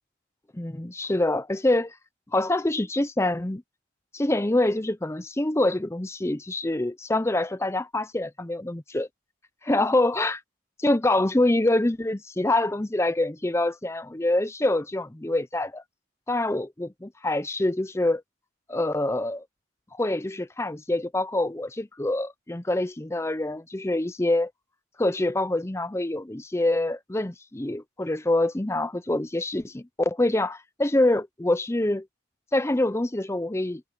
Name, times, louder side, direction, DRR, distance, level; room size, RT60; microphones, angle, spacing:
voice 1, 0.5-2.0 2.3-3.6 4.1-9.1 9.6-10.4 10.8-15.8 16.3-18.2 18.7-19.4 19.9-24.5 25.0-32.0 32.5-33.8, left 1 dB, 15° left, 0.6 m, -25 dB
head